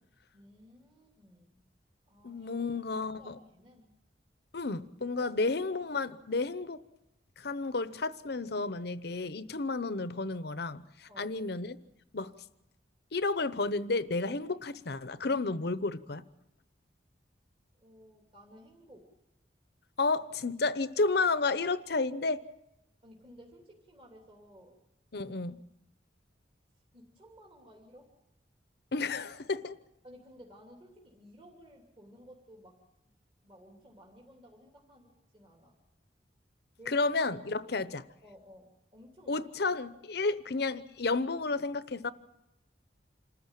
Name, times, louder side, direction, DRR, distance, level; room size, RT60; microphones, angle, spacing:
voice 1, 0.3-1.7 2.1-2.8 3.2-3.9 5.2-5.3 11.1-11.4 12.2-12.3 17.7-19.1 23.0-24.8 26.9-28.1 30.0-32.8 33.4-35.8 36.8-37.1 37.6-37.7 38.2-39.8, equal, 30° right, 3.0 m, -56 dB
voice 2, 2.2-3.4 4.5-6.8 7.4-11.8 12.1-12.3 13.1-16.2 20.0-22.4 25.1-25.6 28.9-29.8 36.9-38.0 39.3-42.1, left 3 dB, 65° left, 0.9 m, -31 dB
27.0 x 14.5 x 9.0 m
head